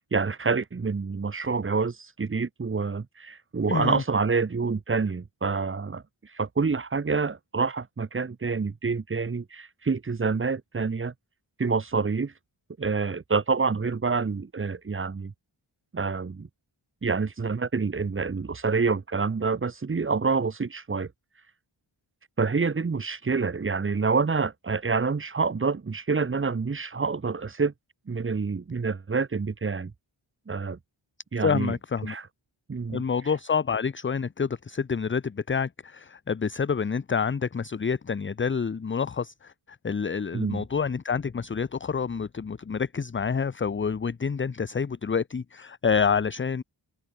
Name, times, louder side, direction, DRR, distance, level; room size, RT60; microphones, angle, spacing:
voice 1, 0.0-6.0 6.3-11.1 11.6-12.3 12.8-15.3 15.9-16.5 17.0-21.1 22.4-27.7 28.1-29.9 30.5-30.8 31.3-31.8 32.0-32.2 32.7-33.0 40.3-40.6, right 4 dB, 25° right, 0.7 m, -27 dB
voice 2, 3.7-4.0 31.4-32.2 32.9-46.6, left 6 dB, 25° left, 0.5 m, -28 dB
open air
wide cardioid pair, 50°, 49 cm